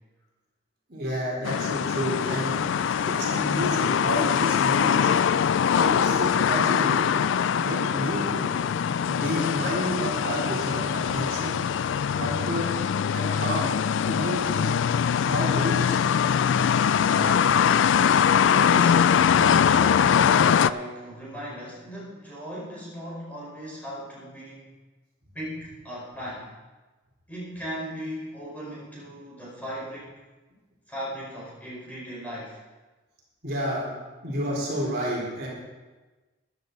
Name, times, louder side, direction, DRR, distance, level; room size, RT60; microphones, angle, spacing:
voice 1, 0.9-2.6 3.1-5.1 5.7-7.0 7.5-8.5 9.1-11.6 12.2-12.7 13.1-13.7 14.1-14.7 15.1-16.0 33.4-33.9 34.2-35.5, equal, 50° right, -4 dB, 3.8 m, -30 dB
sound 1, 1.4-20.7, left 8 dB, 70° left, 0.3 m, -22 dB
voice 2, 16.8-17.8 18.4-24.7 25.3-26.5 27.3-30.1 30.9-32.6, equal, 10° left, -7 dB, 4.7 m, -37 dB
15.0 x 11.5 x 4.0 m, 1.2 s
head